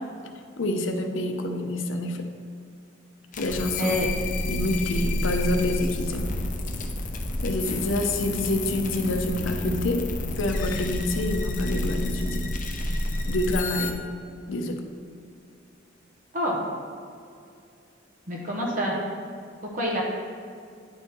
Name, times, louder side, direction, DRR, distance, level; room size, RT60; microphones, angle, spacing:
voice 1, 0.6-2.3 3.4-4.0 4.3-6.3 7.4-10.1 10.4-12.5 13.3-14.0 14.5-14.8, left 1 dB, 80° left, 5 dB, 0.7 m, -27 dB
sound 1, 3.3-13.9, left 1 dB, 40° left, 0.6 m, -29 dB
voice 2, 18.3-18.9 19.7-20.0, equal, 45° right, -3 dB, 1.0 m, -26 dB
9.7 x 3.5 x 4.3 m, 2.4 s
head